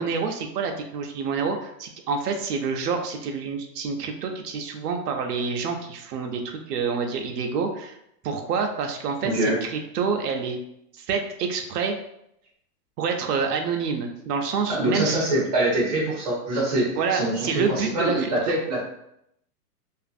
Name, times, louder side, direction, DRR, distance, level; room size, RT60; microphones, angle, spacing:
voice 1, 0.0-8.0 8.2-10.6 11.0-12.0 13.0-15.3 16.9-18.6, right 5 dB, 75° right, 4 dB, 0.6 m, -27 dB
voice 2, 9.2-9.6 14.7-18.8, right 1 dB, 25° right, -6 dB, 0.5 m, -24 dB
2.5 x 2.4 x 2.4 m, 0.77 s
supercardioid pair, 180°, 48 cm